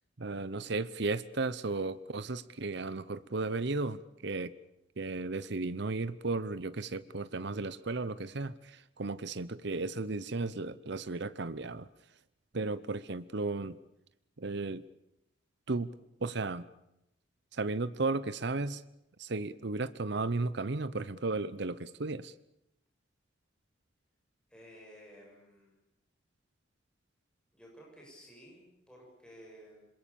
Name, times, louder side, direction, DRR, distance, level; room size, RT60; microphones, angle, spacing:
voice 1, 0.2-4.5 5.0-11.9 12.5-13.8 14.4-14.9 15.7-15.9 16.2-16.6 17.5-18.8 19.2-22.3, right 3 dB, 60° right, 15 dB, 0.8 m, -34 dB
voice 2, 24.5-25.7 27.5-29.9, equal, 5° left, -3 dB, 7.2 m, -54 dB
27.0 x 22.0 x 7.1 m, 0.85 s
head